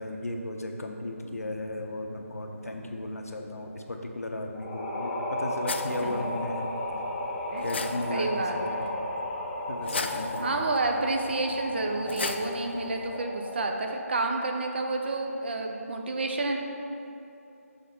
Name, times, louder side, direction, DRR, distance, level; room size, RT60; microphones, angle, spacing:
voice 1, 0.0-6.7 7.6-8.3 8.6-9.1 9.7-10.5, left 1 dB, 75° left, 2 dB, 0.8 m, -35 dB
sound 1, 4.5-14.3, left 1 dB, 15° left, 0.6 m, -34 dB
sound 2, 5.7-13.2, left 4 dB, 45° left, 0.3 m, -39 dB
voice 2, 8.1-8.9 10.4-16.6, right 2 dB, 45° right, 2 dB, 0.7 m, -30 dB
6.6 x 3.7 x 5.8 m, 2.8 s
figure-of-eight pair, 160°, 8 cm